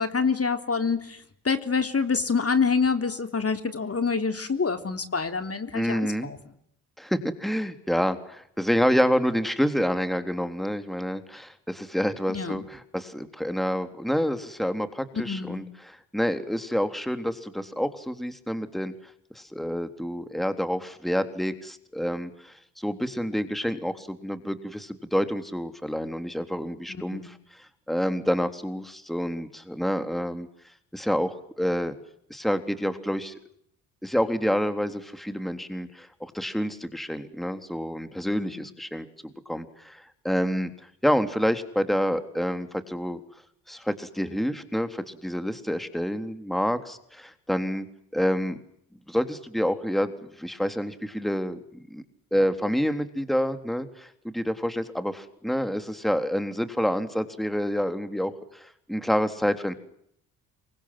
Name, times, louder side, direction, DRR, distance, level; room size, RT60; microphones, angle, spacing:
voice 1, 0.0-6.4 12.3-12.6 15.3-15.6 26.9-27.3 38.2-38.7, left 5 dB, 30° left, 8 dB, 3.6 m, -27 dB
voice 2, 5.7-6.3 7.0-18.9 19.4-30.5 30.9-32.0 32.3-33.3 34.0-43.2 43.7-47.9 48.1-48.6 49.1-52.0 52.3-59.7, equal, ahead, 9 dB, 3.7 m, -28 dB
28.0 x 24.5 x 7.6 m, 0.70 s
hypercardioid pair, 50°, 46 cm